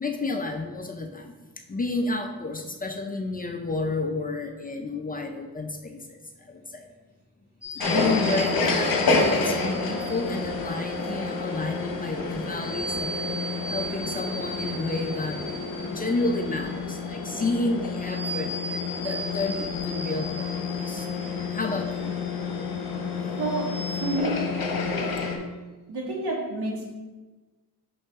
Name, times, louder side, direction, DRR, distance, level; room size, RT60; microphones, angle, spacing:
voice 1, 0.0-1.3 1.7-6.9 7.7-13.3 13.7-15.4 15.8-18.5 19.0-21.1 21.5-22.1, left 3 dB, 25° left, 4 dB, 0.4 m, -31 dB
sound 1, 7.6-24.2, right 1 dB, 5° right, 1.7 m, -39 dB
sound 2, 7.8-25.4, left 4 dB, 65° left, 1.0 m, -29 dB
voice 2, 23.9-24.5 25.9-26.8, right 2 dB, 85° right, -2 dB, 1.6 m, -29 dB
5.7 x 5.3 x 3.5 m, 1.2 s
wide cardioid pair, 165°, 38 cm